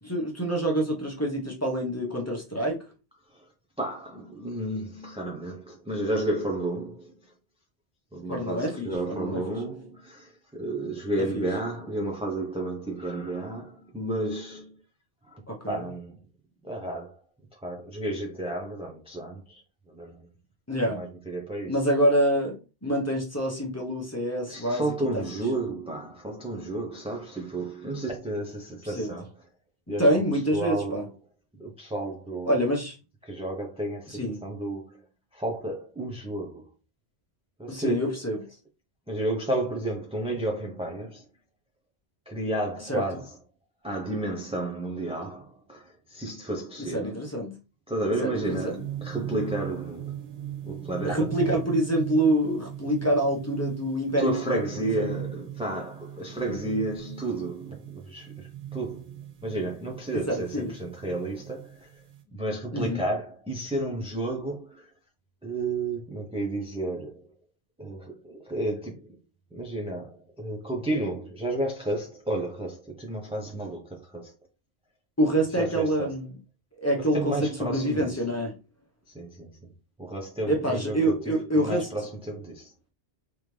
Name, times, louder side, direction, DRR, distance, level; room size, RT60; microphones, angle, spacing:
voice 1, 0.0-2.8 8.3-9.6 11.3-11.4 15.5-15.9 20.7-21.0 21.7-24.8 28.8-29.2 30.0-31.0 32.4-33.0 34.1-34.4 37.7-38.4 42.9-43.0 46.8-47.6 48.2-48.8 51.0-55.1 60.3-60.8 62.7-63.0 75.2-76.3 76.8-78.6 80.5-81.9, right 1 dB, 15° left, 0.9 m, -26 dB
voice 2, 3.8-7.1 8.1-14.7 15.2-16.2 16.6-17.2 17.6-19.6 19.9-20.3 20.9-21.8 24.5-29.3 29.9-30.1 30.5-31.1 31.6-32.6 33.2-35.0 35.3-36.7 37.6-38.0 39.1-41.3 42.3-43.4 43.8-47.2 47.9-50.2 50.6-51.5 54.2-59.1 59.4-61.9 62.3-64.9 65.4-67.3 67.8-69.1 69.5-74.3 75.5-76.1 77.0-78.2 79.1-79.5 80.0-82.7, right 2 dB, 5° right, 0.5 m, -32 dB
sound 1, 48.4-62.2, right 11 dB, 45° right, 0.7 m, -38 dB
3.7 x 3.3 x 3.2 m
omnidirectional pair, 1.2 m